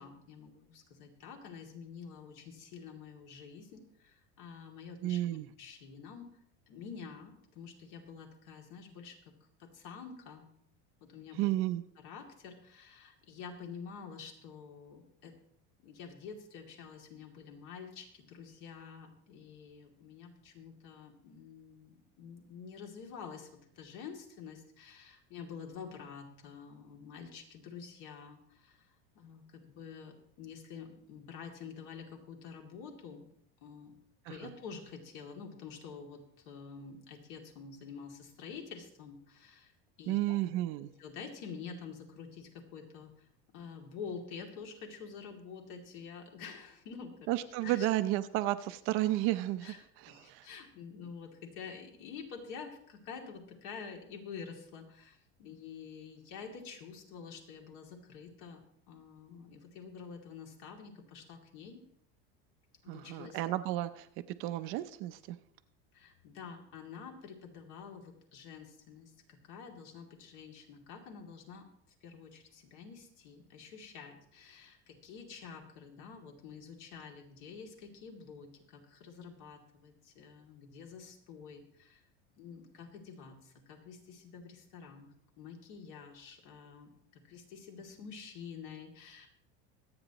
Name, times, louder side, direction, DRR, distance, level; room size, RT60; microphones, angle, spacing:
voice 1, 0.0-6.3 6.7-9.3 9.6-10.5 11.0-11.5 12.0-15.4 15.8-23.5 23.8-28.9 29.1-33.3 33.6-33.9 34.3-39.7 40.0-40.4 41.0-43.3 43.5-47.3 47.6-47.9 49.6-49.8 50.1-58.6 58.9-61.8 62.8-63.4 65.9-71.7 72.0-82.0 82.4-89.3, left 6 dB, 60° left, 2 dB, 2.6 m, -48 dB
voice 2, 5.0-5.5 11.3-11.8 34.2-34.5 40.1-40.9 47.3-50.5 62.9-65.4, right 15 dB, 45° right, 11 dB, 0.6 m, -33 dB
24.5 x 8.7 x 3.0 m, 0.70 s
cardioid pair, 165°, 29 cm